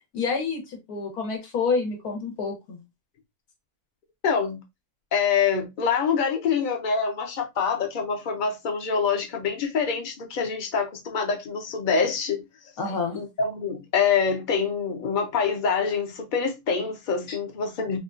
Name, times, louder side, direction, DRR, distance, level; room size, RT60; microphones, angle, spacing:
voice 1, 0.1-2.8 12.8-13.2 17.3-17.4, left 4 dB, 90° left, 1.5 m, -28 dB
voice 2, 4.2-4.6 5.1-12.5 12.8-18.0, left 6 dB, 45° left, 0.6 m, -25 dB
3.6 x 2.3 x 2.4 m
omnidirectional pair, 1.5 m